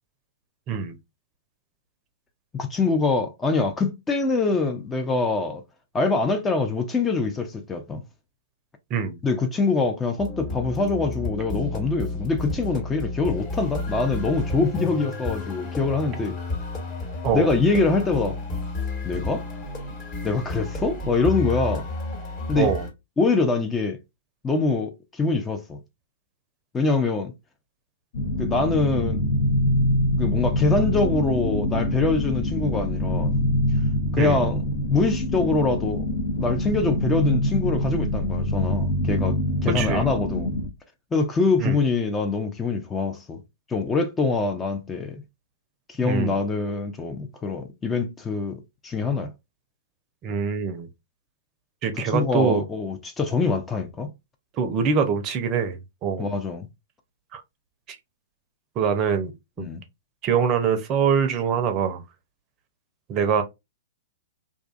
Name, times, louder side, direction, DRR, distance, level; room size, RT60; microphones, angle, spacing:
voice 1, 2.5-5.6 5.9-8.0 9.2-16.4 17.3-18.4 19.0-19.4 20.2-21.9 22.5-22.7 23.2-24.0 24.4-25.8 26.7-27.3 28.4-29.3 30.2-33.3 34.1-34.6 34.9-36.0 36.4-40.5 41.1-43.4 43.7-45.2 45.9-49.3 52.0-54.1 56.2-56.7 59.6-59.8, left 3 dB, 15° left, 0.4 m, -24 dB
sound 1, 10.2-22.9, left 2 dB, 35° left, 1.2 m, -31 dB
sound 2, 28.1-40.7, left 1 dB, 60° left, 0.7 m, -25 dB
voice 2, 39.7-40.1 41.6-41.8 46.0-46.3 50.2-50.9 51.8-52.6 54.6-56.3 57.3-57.4 57.9-58.0 58.8-59.3 59.6-59.7 60.2-62.0 63.1-63.4, right 6 dB, 35° right, 0.5 m, -24 dB
2.5 x 2.3 x 2.4 m
hypercardioid pair, 115°, 0 cm